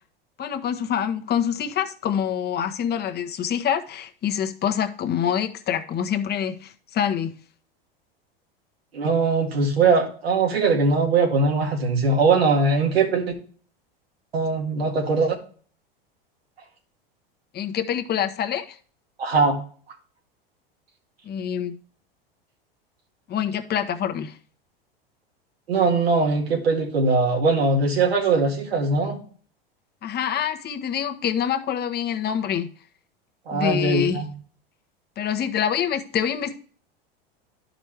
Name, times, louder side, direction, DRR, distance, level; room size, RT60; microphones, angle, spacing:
voice 1, 0.4-7.3 17.5-18.8 21.2-21.7 23.3-24.4 30.0-32.7 33.5-34.2 35.2-36.6, left 9 dB, 35° left, 1.1 m, -26 dB
voice 2, 8.9-13.3 14.3-15.4 19.2-19.6 25.7-29.2 33.5-34.3, right 4 dB, 90° right, 2.1 m, -21 dB
11.5 x 5.1 x 3.3 m
hypercardioid pair, 95°, 30 cm